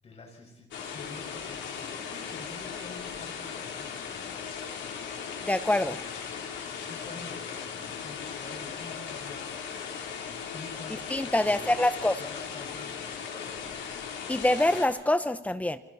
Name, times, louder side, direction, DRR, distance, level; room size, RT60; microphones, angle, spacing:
voice 1, 0.0-5.0 6.6-11.1 11.5-13.9, left 2 dB, 35° left, 1 dB, 5.8 m, -48 dB
sound 1, 0.7-14.9, left 7 dB, 85° left, 3.6 m, -38 dB
voice 2, 5.4-6.0 11.1-12.1 14.3-15.8, left 1 dB, 10° left, 12 dB, 0.9 m, -25 dB
28.0 x 26.0 x 4.2 m, 0.86 s
cardioid pair, 140°, 19 cm